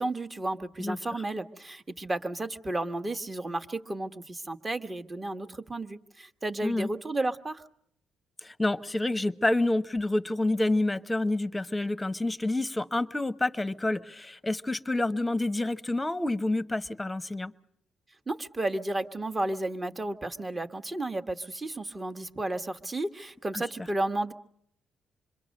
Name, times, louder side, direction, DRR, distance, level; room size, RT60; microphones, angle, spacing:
voice 1, 0.0-7.7 18.3-24.3, right 2 dB, 25° right, 8 dB, 1.3 m, -33 dB
voice 2, 8.4-17.5 23.5-23.6, left 2 dB, 15° left, 13 dB, 0.9 m, -28 dB
27.0 x 22.5 x 6.5 m, 0.70 s
cardioid pair, 90°, 0 cm